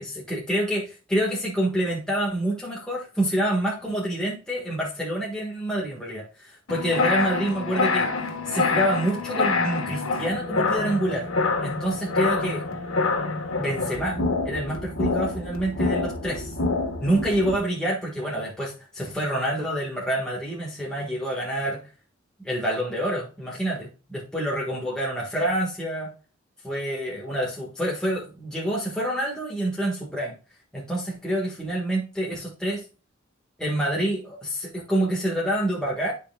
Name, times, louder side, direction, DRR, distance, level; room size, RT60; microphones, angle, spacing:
voice 1, 0.0-8.1 8.5-11.3 11.6-12.6 13.6-16.5 17.0-21.9 22.4-26.1 26.6-30.3 30.7-32.8 33.6-36.1, right 1 dB, 5° left, -5 dB, 1.7 m, -27 dB
sound 1, 6.7-17.6, left 3 dB, 85° left, 1.5 m, -26 dB
11.5 x 5.5 x 2.4 m, 0.34 s
head